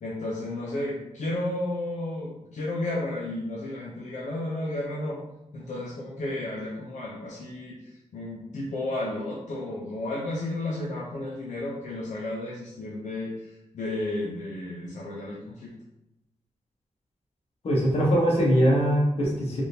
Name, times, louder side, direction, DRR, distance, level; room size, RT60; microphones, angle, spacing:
voice 1, 0.0-5.2 5.5-7.8 8.1-15.7, left 1 dB, 75° left, -5 dB, 0.6 m, -32 dB
voice 2, 17.6-19.6, equal, 55° left, -3 dB, 0.9 m, -22 dB
3.4 x 2.5 x 2.8 m, 0.88 s
wide cardioid pair, 165°, 12 cm